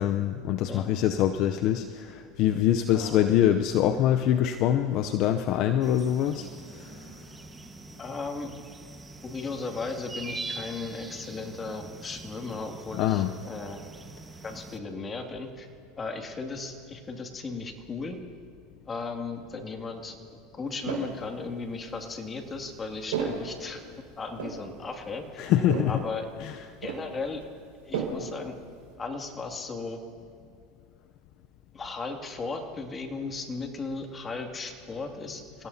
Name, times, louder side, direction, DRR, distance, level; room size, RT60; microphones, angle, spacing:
voice 1, 0.0-6.5 13.0-13.3 25.4-25.9, left 11 dB, 55° left, 8 dB, 0.6 m, -24 dB
voice 2, 2.9-3.3 8.0-8.5 9.2-13.8 14.4-15.7 16.0-18.2 18.9-23.8 24.2-25.4 25.9-26.2 26.8-27.4 27.9-28.5 29.0-30.0 31.7-35.7, left 4 dB, 25° left, 3 dB, 2.4 m, -36 dB
sound 1, 5.8-14.8, right 3 dB, 15° right, 1.4 m, -43 dB
sound 2, 20.7-21.2 21.8-28.9, right 6 dB, 85° right, 5.2 m, -37 dB
29.5 x 17.0 x 2.8 m, 2.4 s
hypercardioid pair, 95°, 0 cm